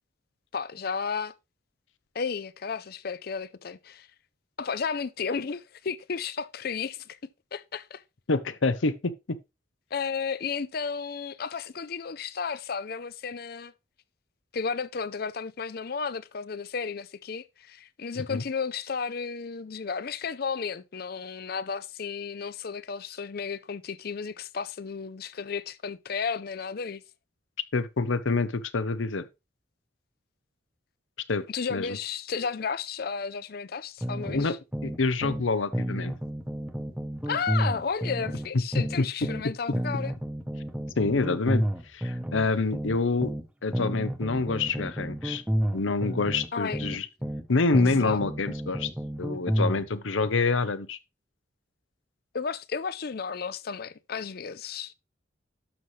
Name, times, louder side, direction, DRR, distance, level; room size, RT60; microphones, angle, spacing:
voice 1, 0.5-1.3 2.1-4.1 4.6-7.2 7.5-8.0 9.9-13.7 14.5-27.0 31.5-34.6 37.2-40.1 46.5-46.8 48.0-48.2 52.3-54.9, left 5 dB, 50° left, 0.5 m, -33 dB
voice 2, 8.3-9.4 18.1-18.4 27.7-29.3 31.3-31.4 31.7-32.0 34.3-34.5 34.8-36.1 38.8-39.3 41.0-43.3 43.6-45.4 45.7-47.1 47.5-48.9 49.2-51.0, left 3 dB, 85° left, 0.8 m, -27 dB
sound 1, 34.0-35.5 35.7-39.5 39.7-43.5 43.7-47.5 47.7-49.8, equal, 5° right, 0.8 m, -31 dB
12.0 x 5.5 x 3.1 m
head